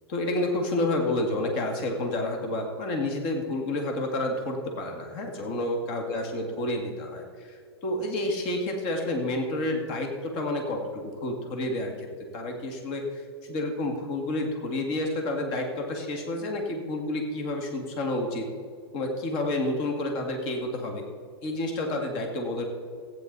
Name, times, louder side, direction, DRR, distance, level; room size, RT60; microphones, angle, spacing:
voice 1, 0.1-12.1 12.3-18.5 18.9-21.0 21.4-22.6, left 1 dB, 40° left, 3 dB, 2.0 m, -29 dB
15.5 x 9.3 x 4.0 m, 2.3 s
hypercardioid pair, 115°, 14 cm